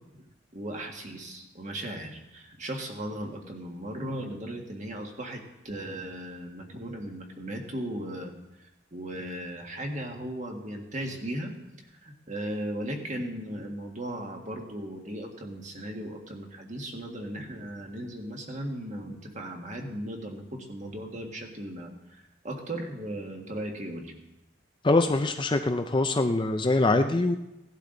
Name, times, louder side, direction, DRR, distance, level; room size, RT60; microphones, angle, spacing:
voice 1, 0.5-8.3 8.6-11.5 12.0-24.1, right 1 dB, 35° right, 2 dB, 1.8 m, -37 dB
voice 2, 24.8-27.4, left 2 dB, 25° left, 7 dB, 0.5 m, -23 dB
17.5 x 11.5 x 3.9 m, 0.96 s
head